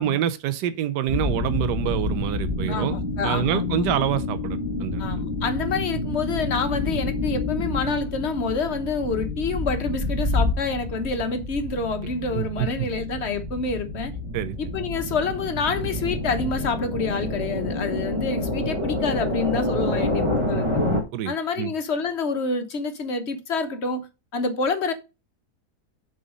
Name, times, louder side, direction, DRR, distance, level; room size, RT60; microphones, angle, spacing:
voice 1, 0.0-3.0 3.2-5.0 12.3-12.9 14.3-14.6 21.1-21.7, right 11 dB, 90° right, 1.2 m, -26 dB
sound 1, 1.1-21.0, left 2 dB, 20° right, 1.4 m, -28 dB
voice 2, 2.7-3.9 5.0-14.1 14.6-20.7 21.3-24.1 24.3-24.9, left 4 dB, 45° left, 1.2 m, -27 dB
7.5 x 4.0 x 5.0 m
omnidirectional pair, 1.8 m